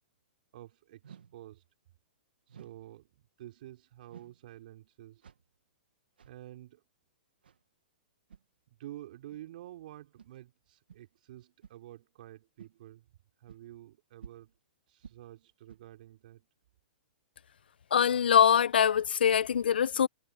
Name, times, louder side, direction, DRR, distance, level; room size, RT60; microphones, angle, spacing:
voice 1, 0.5-1.6 2.5-5.2 6.3-6.8 8.7-13.1 13.4-14.5 14.9-16.5, right 14 dB, 60° right, 5.3 m, -49 dB
sound 1, 1.0-1.4 2.5-2.9 4.1-4.5 5.2-5.6 6.2-6.4 7.4-7.6 8.3-8.5 9.3-9.4 10.2-10.3 10.9-11.0 11.6-11.9 12.6-12.7 13.5-13.6 14.2-14.6 15.0-15.3 15.7-15.9, right 7 dB, 80° right, 1.6 m, -52 dB
voice 2, 17.9-20.1, left 8 dB, 75° left, 0.8 m, -23 dB
hypercardioid pair, 125°, 5 cm